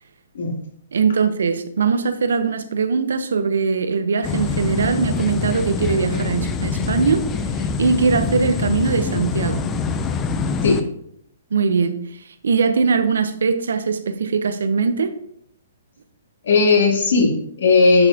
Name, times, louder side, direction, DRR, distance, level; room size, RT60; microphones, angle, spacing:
voice 1, 0.9-7.3 7.8-9.6 11.5-12.0 12.4-15.1, right 5 dB, 85° right, 11 dB, 0.7 m, -21 dB
sound 1, 4.2-10.8, left 5 dB, 15° left, 0.4 m, -24 dB
voice 2, 16.4-18.1, left 4 dB, 75° left, -1 dB, 2.2 m, -16 dB
10.5 x 4.2 x 2.8 m, 0.71 s
hypercardioid pair, 170°, 0 cm